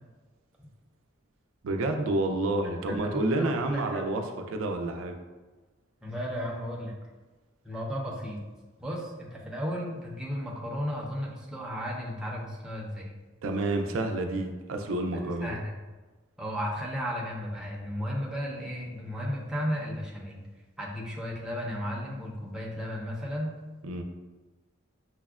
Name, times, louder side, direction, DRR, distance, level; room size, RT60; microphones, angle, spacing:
voice 1, 1.6-5.2 13.4-15.6 23.8-24.0, right 2 dB, 90° right, 4 dB, 0.4 m, -29 dB
voice 2, 3.1-4.1 6.0-6.9 7.6-8.4 8.8-13.1 15.1-15.7 16.4-20.4 20.8-23.5, equal, 5° right, -4 dB, 0.5 m, -34 dB
5.8 x 2.1 x 2.3 m, 1.2 s
head